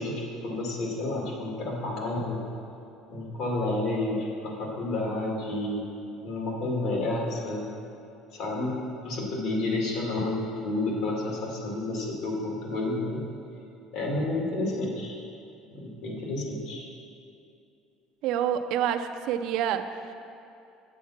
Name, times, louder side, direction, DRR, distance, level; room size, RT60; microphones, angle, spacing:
voice 1, 0.0-2.5 3.1-5.8 6.2-7.7 8.3-13.2 13.9-15.3 15.7-16.9, left 2 dB, 60° left, -2 dB, 2.1 m, -30 dB
voice 2, 18.2-20.1, right 9 dB, 60° right, 8 dB, 0.5 m, -28 dB
8.3 x 7.3 x 5.8 m, 2.7 s
cardioid pair, 160°, 0 cm